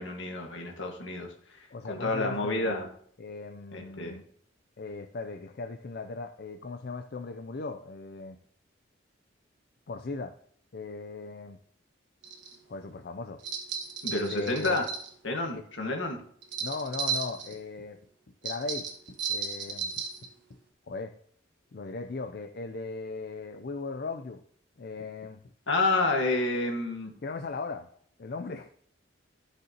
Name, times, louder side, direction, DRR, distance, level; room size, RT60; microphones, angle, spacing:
voice 1, 0.0-2.9 3.7-4.2 14.0-14.9 15.2-16.2 25.7-27.1, left 2 dB, 70° left, 2 dB, 1.6 m, -29 dB
voice 2, 1.7-2.7 3.2-4.2 4.8-8.4 9.9-10.4 10.7-11.6 12.7-13.4 14.1-14.8 15.5-15.6 16.6-18.0 18.4-19.9 20.2-20.3 20.9-21.2 21.7-24.4 24.8-25.4 27.2-27.9 28.2-28.7, left 3 dB, 50° left, 6 dB, 0.5 m, -38 dB
sound 1, 12.2-12.5 13.4-15.1 16.4-17.5 18.4-20.3, right 5 dB, 65° right, 1.4 m, -34 dB
12.0 x 6.6 x 2.9 m, 0.62 s
head